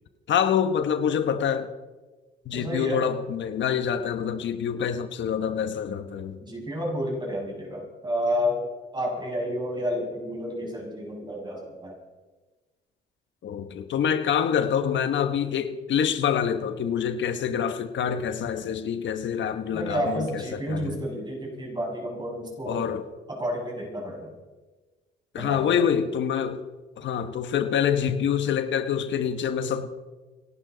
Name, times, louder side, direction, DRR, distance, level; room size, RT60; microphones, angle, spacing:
voice 1, 0.3-1.7 2.5-6.4 13.4-21.0 22.6-23.0 25.3-26.6 27.0-30.0, left 8 dB, 70° left, 9 dB, 1.2 m, -26 dB
voice 2, 2.5-3.1 6.4-12.0 19.7-22.9 23.3-24.3 25.4-25.8, equal, 20° right, -1 dB, 6.3 m, -30 dB
27.5 x 11.5 x 4.0 m, 1.3 s
cardioid pair, 90°, 20 cm